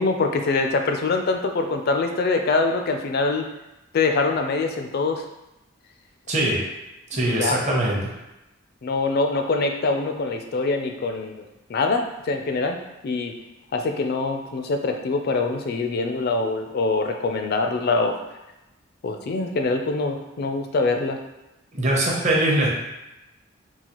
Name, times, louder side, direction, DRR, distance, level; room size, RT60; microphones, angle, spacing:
voice 1, 0.0-3.5 3.9-5.2 7.3-7.8 8.8-11.4 11.7-13.3 13.7-18.2 19.0-21.2, left 3 dB, 50° left, 4 dB, 0.4 m, -24 dB
voice 2, 6.3-6.6 7.1-8.1 21.7-22.7, right 1 dB, 35° right, -3 dB, 0.7 m, -22 dB
3.9 x 2.4 x 2.9 m, 0.97 s
head